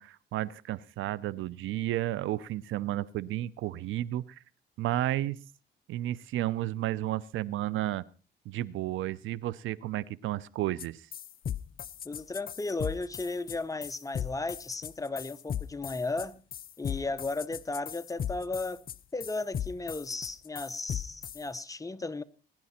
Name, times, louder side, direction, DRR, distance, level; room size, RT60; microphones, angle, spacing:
voice 1, 0.0-4.4 4.8-5.4 5.9-8.0 8.5-11.1, right 14 dB, 85° right, 0.7 m, -32 dB
sound 1, 10.8-10.9 11.1-21.4, left 9 dB, 50° left, 0.6 m, -37 dB
voice 2, 12.0-16.4 16.8-18.8 19.1-22.2, left 3 dB, 15° left, 0.9 m, -35 dB
20.5 x 10.5 x 4.3 m
cardioid pair, 90°, 20 cm